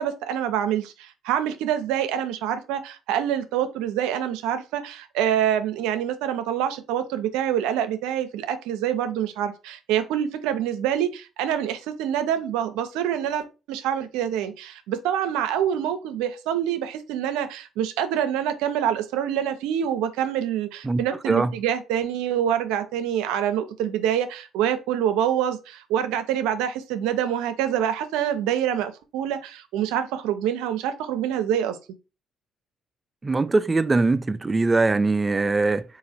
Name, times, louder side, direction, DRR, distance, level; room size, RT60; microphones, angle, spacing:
voice 1, 0.0-31.8, right 10 dB, 90° right, 0.5 m, -26 dB
voice 2, 33.2-35.8, right 3 dB, 25° right, 0.4 m, -21 dB
4.0 x 2.5 x 4.1 m
supercardioid pair, 75°, 0 cm